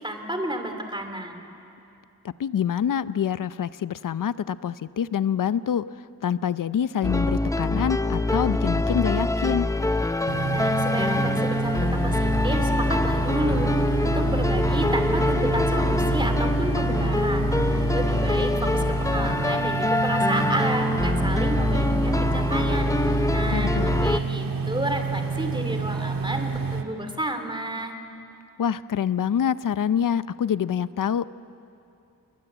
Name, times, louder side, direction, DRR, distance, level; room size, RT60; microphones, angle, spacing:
voice 1, 0.0-1.4 10.5-28.0, right 1 dB, 15° right, 6 dB, 2.8 m, -31 dB
voice 2, 2.2-5.8 6.2-9.7 23.5-24.0 28.6-31.3, left 8 dB, 65° left, 16 dB, 0.6 m, -26 dB
sound 1, 7.0-24.2, left 2 dB, 10° left, 0.6 m, -24 dB
sound 2, 10.3-26.8, right 5 dB, 75° right, 1.7 m, -29 dB
29.0 x 22.0 x 8.0 m, 2.6 s
wide cardioid pair, 110°, 35 cm